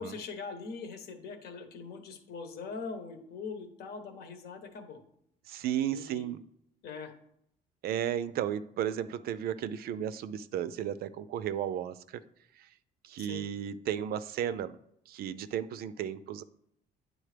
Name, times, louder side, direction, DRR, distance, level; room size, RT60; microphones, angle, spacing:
voice 1, 0.0-5.0 5.9-6.2 6.8-7.1 13.2-13.4, left 5 dB, 70° left, 6 dB, 1.1 m, -42 dB
voice 2, 5.5-6.4 7.8-12.2 12.6-12.7 13.0-14.8 15.1-16.4, right 10 dB, 65° right, 14 dB, 0.4 m, -34 dB
8.8 x 3.9 x 3.3 m, 0.74 s
cardioid pair, 110°, 17 cm